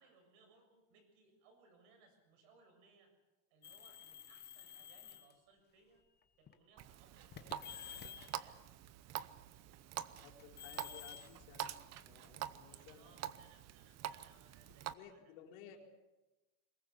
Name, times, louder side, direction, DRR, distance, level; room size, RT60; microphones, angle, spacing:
voice 1, 0.0-3.1 3.5-6.0 6.4-8.6 12.6-15.8, right 4 dB, 85° right, 6 dB, 7.2 m, -67 dB
sound 1, 3.6-5.3 6.2-6.5 7.3-8.4 10.2-12.3, left 9 dB, 25° left, 1.2 m, -52 dB
Water tap faucet, 6.8-14.9, right 12 dB, 40° right, 0.8 m, -47 dB
voice 2, 10.2-13.1 14.7-15.8, left 8 dB, 90° left, 2 dB, 4.5 m, -57 dB
23.0 x 20.5 x 7.2 m, 1.1 s
cardioid pair, 155°, 40 cm